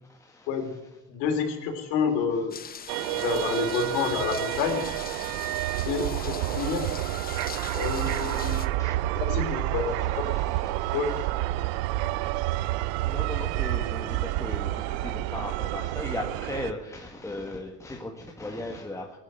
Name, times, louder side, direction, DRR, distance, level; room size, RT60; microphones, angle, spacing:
voice 1, 0.1-0.5 3.1-3.3 5.2-6.0 6.4-6.5 7.5-8.1 8.4-9.5 9.9-11.2 12.8-19.2, left 1 dB, 10° left, 0 dB, 1.8 m, -39 dB
voice 2, 1.1-2.6 3.0-4.8 5.9-6.8 7.7-8.6 9.3-9.9 10.9-11.1, left 6 dB, 85° left, 6 dB, 3.1 m, -28 dB
sound 1, 2.5-8.7, left 7 dB, 30° left, 1.1 m, -41 dB
sound 2, 2.9-16.7, right 16 dB, 90° right, 0.6 m, -29 dB
18.5 x 9.1 x 7.9 m, 0.93 s
cardioid pair, 125°, 31 cm